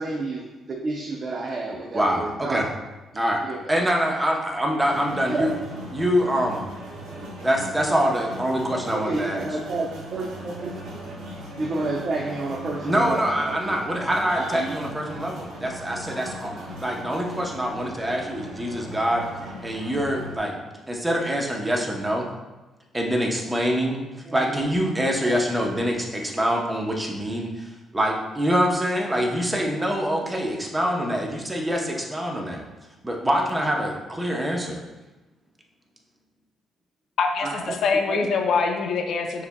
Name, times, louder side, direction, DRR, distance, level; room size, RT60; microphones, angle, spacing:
voice 1, 0.0-2.7 3.1-3.6 5.3-5.5 8.9-10.7 11.6-13.8 14.3-14.8 24.3-24.6 37.4-37.8 38.1-38.3, right 3 dB, 45° right, 0 dB, 0.5 m, -30 dB
voice 2, 1.9-2.7 3.1-3.4 3.7-5.5 5.9-6.7 7.4-9.5 12.8-16.5 16.8-19.3 19.6-20.6 20.9-22.3 22.9-24.0 24.3-32.6 33.0-34.8, equal, 15° right, 0 dB, 0.7 m, -25 dB
sound 1, 4.8-20.4, equal, 80° right, 0.9 m, -38 dB
voice 3, 37.2-39.5, left 5 dB, 65° left, 4 dB, 0.4 m, -24 dB
6.5 x 2.9 x 2.2 m, 1.2 s
cardioid pair, 90°, 0 cm